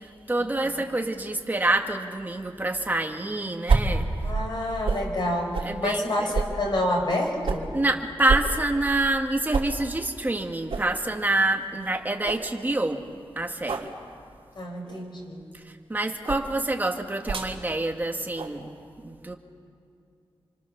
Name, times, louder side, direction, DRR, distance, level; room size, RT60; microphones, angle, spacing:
voice 1, 0.0-4.1 5.6-6.3 7.7-13.0 13.4-13.9 15.5-18.7 19.0-19.3, right 2 dB, 20° right, 3 dB, 1.9 m, -27 dB
sound 1, 3.7-5.1 5.5-5.7 6.3-7.7 8.3-9.2 9.5-9.7 10.1-10.2 10.7-10.9 11.4-11.5 11.8-11.9 12.2-12.5 13.6-13.9 14.8-15.1 16.2-16.5 17.2-17.5 18.3-18.6, right 4 dB, 75° right, 3.4 m, -28 dB
voice 2, 4.2-7.7 14.6-15.4, left 1 dB, 55° left, 1 dB, 5.6 m, -28 dB
29.0 x 25.0 x 6.9 m, 2.4 s
wide cardioid pair, 125°, 9 cm